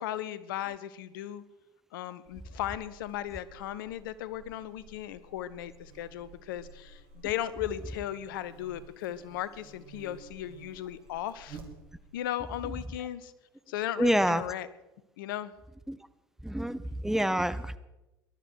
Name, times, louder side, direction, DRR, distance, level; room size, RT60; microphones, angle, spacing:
voice 1, 0.0-1.4 1.9-11.6 12.1-13.3 13.7-14.7 15.2-15.5, left 12 dB, 65° left, 16 dB, 0.8 m, -36 dB
Buzz, 2.2-12.2, right 4 dB, 50° right, 2.6 m, -53 dB
voice 2, 14.0-14.4 15.9-16.0 16.4-17.8, right 1 dB, 5° right, 13 dB, 0.7 m, -27 dB
20.0 x 12.0 x 4.6 m, 0.99 s
figure-of-eight pair, 70°, 12 cm